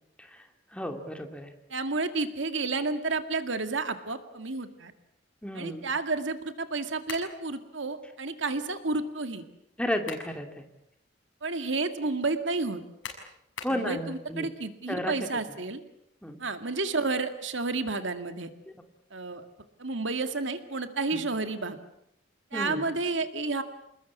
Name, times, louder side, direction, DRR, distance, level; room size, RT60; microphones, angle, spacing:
voice 1, 0.2-1.5 5.4-5.9 9.8-10.6 13.6-14.6 14.9-15.3 16.2-16.4 18.7-18.8 21.1-21.2 22.5-22.9, equal, 5° left, 5 dB, 2.5 m, -33 dB
voice 2, 1.7-4.9 5.6-9.4 11.4-12.8 13.7-15.8 16.4-18.5 19.1-19.5 19.8-21.8 22.5-23.6, right 3 dB, 70° right, 9 dB, 2.1 m, -31 dB
sound 1, 7.1-7.4 9.7-10.4 10.8-10.9 13.0-13.9, left 5 dB, 75° left, 6.6 m, -40 dB
27.0 x 21.0 x 8.3 m, 0.79 s
head